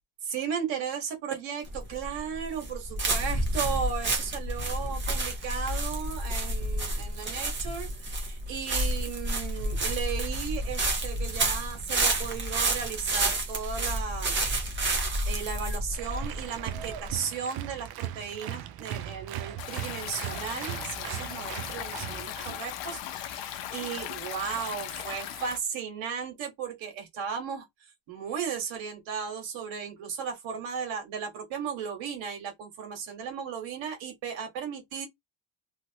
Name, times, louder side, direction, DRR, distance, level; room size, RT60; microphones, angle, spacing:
voice 1, 0.2-14.3 15.2-35.1, right 7 dB, 70° right, 1.6 m, -35 dB
sound 1, 1.7-17.2, right 1 dB, 25° right, 1.0 m, -30 dB
Applause, 15.9-22.6, right 11 dB, 50° right, 0.5 m, -38 dB
Stream, 19.6-25.6, left 11 dB, 65° left, 0.7 m, -38 dB
3.0 x 2.6 x 2.8 m
cardioid pair, 145°, 47 cm